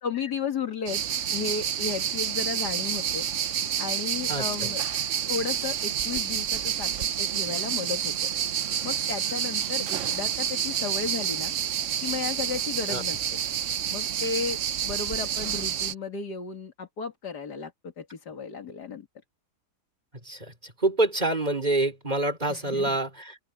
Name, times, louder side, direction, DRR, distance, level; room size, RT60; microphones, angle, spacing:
voice 1, 0.0-1.0 1.3-3.3 3.8-4.8 5.3-6.9 7.2-8.3 8.8-11.5 12.0-13.4 13.9-14.6 14.8-19.1 22.5-23.0, left 6 dB, 80° left, 2.7 m, -34 dB
sound 1, 0.9-15.9, right 9 dB, 55° right, 1.0 m, -29 dB
voice 2, 20.2-23.4, right 2 dB, 25° right, 4.2 m, -27 dB
open air
omnidirectional pair, 1.7 m